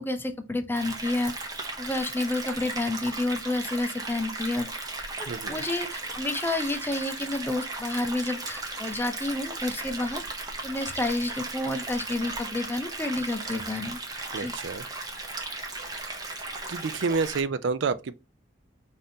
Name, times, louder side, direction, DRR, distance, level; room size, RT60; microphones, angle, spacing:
voice 1, 0.0-1.3 1.8-4.7 5.2-10.2 10.6-14.0 14.4-14.5, left 2 dB, 10° left, 0.5 m, -30 dB
sound 1, 0.7-17.4, right 2 dB, 20° right, 0.7 m, -36 dB
voice 2, 5.3-5.6 14.3-14.8 16.7-18.1, right 4 dB, 65° right, 0.4 m, -29 dB
5.3 x 2.6 x 2.7 m
head